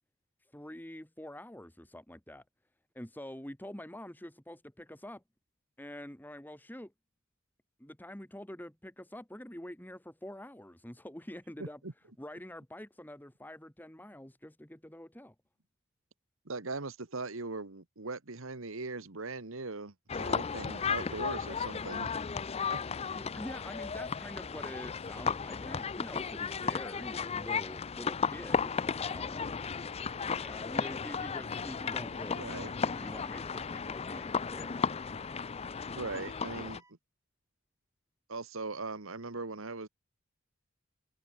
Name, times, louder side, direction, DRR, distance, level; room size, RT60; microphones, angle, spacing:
voice 1, 0.5-2.4 3.0-5.2 5.8-6.9 7.8-11.8 12.2-15.4 23.1-29.4 30.3-34.9, left 1 dB, 10° left, 1.8 m, -46 dB
voice 2, 11.6-11.9 16.4-22.2 22.7-22.8 32.3-32.7 36.0-36.8 38.3-39.9, right 3 dB, 70° right, 1.5 m, -40 dB
sound 1, 20.1-36.8, left 5 dB, 30° left, 0.5 m, -35 dB
sound 2, 29.0-36.9, right 3 dB, 15° right, 4.3 m, -63 dB
head